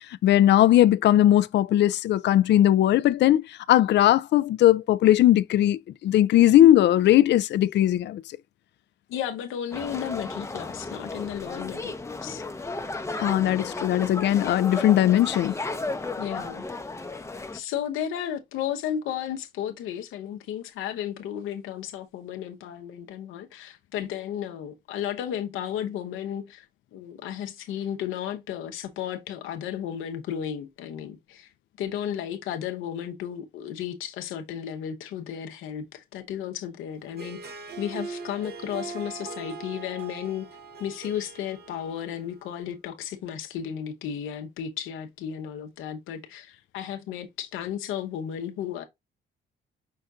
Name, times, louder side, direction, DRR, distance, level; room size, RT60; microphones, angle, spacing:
voice 1, 0.2-8.2 13.2-15.5, left 13 dB, 60° left, 0.4 m, -19 dB
voice 2, 9.1-11.9 12.2-12.4 16.2-16.7 17.5-26.7 26.9-31.5 31.8-40.5 40.8-48.8, left 9 dB, 90° left, 0.9 m, -34 dB
sound 1, 9.7-17.6, left 2 dB, 15° left, 0.7 m, -34 dB
Harp, 37.0-42.5, right 4 dB, 55° right, 1.0 m, -40 dB
5.7 x 2.6 x 3.5 m
cardioid pair, 90°, 20 cm